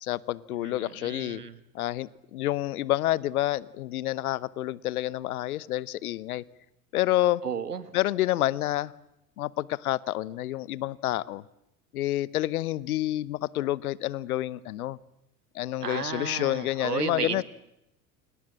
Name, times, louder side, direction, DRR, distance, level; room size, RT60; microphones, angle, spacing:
voice 1, 0.0-1.4 1.7-6.4 6.9-7.4 7.9-8.9 9.4-11.4 11.9-15.0 15.5-17.4, left 15 dB, 70° left, 21 dB, 1.0 m, -28 dB
voice 2, 0.6-1.6 7.4-7.8 15.8-17.4, right 6 dB, 85° right, 13 dB, 1.7 m, -33 dB
28.5 x 26.0 x 7.6 m, 0.88 s
figure-of-eight pair, 70°, 46 cm